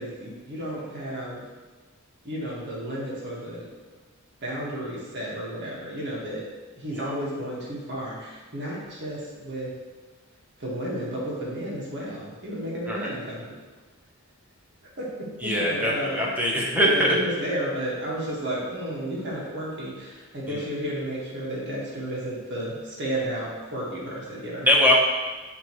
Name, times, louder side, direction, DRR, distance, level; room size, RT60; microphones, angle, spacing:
voice 1, 0.0-1.4 2.2-3.7 4.4-6.4 6.8-9.7 10.6-13.4 15.0-16.3 16.8-24.7, right 1 dB, 50° right, -5 dB, 1.9 m, -32 dB
voice 2, 15.4-17.2 20.5-20.6 24.6-24.9, equal, 10° right, -4 dB, 1.2 m, -22 dB
10.5 x 3.6 x 3.2 m, 1.3 s
head